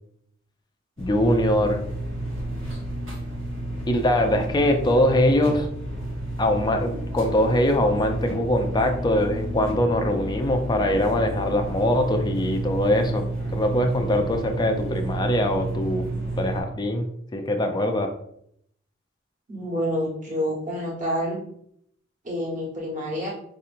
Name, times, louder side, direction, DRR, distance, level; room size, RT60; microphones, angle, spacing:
voice 1, 1.0-1.8 3.9-5.7 6.4-13.2 13.5-16.1 16.4-18.1, left 1 dB, 20° left, 5 dB, 0.4 m, -22 dB
sound 1, 1.0-16.6, right 1 dB, 80° right, 1.4 m, -31 dB
voice 2, 19.5-21.4 22.2-23.3, equal, 40° right, -4 dB, 1.3 m, -28 dB
4.6 x 2.9 x 2.5 m, 0.70 s
head